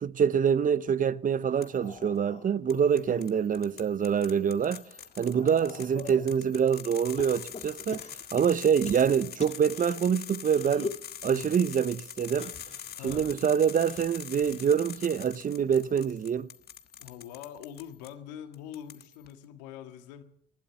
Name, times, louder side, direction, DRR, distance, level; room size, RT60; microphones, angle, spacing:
voice 1, 0.0-4.8 5.2-8.0 8.3-10.9 11.2-12.5 13.0-16.5, right 7 dB, 40° right, 0.7 m, -25 dB
sound 1, 1.5-3.8 4.3-6.3 7.2-10.0 10.5-11.1 12.3-15.2 15.5-16.0 17.1-17.2, left 4 dB, 30° left, 1.9 m, -44 dB
sound 2, 1.6-2.0 2.7-18.1 18.5-19.3, left 9 dB, 50° left, 1.3 m, -44 dB
voice 2, 12.9-13.3 17.0-20.2, left 10 dB, 90° left, 1.7 m, -44 dB
19.5 x 12.0 x 5.9 m
hypercardioid pair, 60°, 21 cm